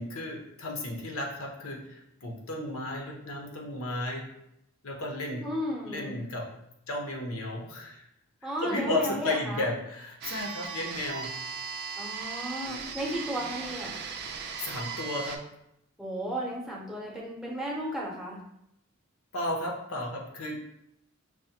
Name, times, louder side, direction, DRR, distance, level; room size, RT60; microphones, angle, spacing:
voice 1, 0.0-4.2 4.8-5.4 5.8-6.5 6.9-8.0 8.6-11.3 13.4-13.5 14.6-15.4 19.3-20.6, left 1 dB, 90° left, 1 dB, 0.7 m, -33 dB
voice 2, 5.4-6.2 8.4-9.7 12.0-14.0 16.0-18.4, equal, ahead, -4 dB, 0.7 m, -34 dB
sound 1, 10.2-15.4, right 5 dB, 50° right, 0.4 m, -37 dB
4.7 x 2.2 x 2.8 m, 0.79 s
head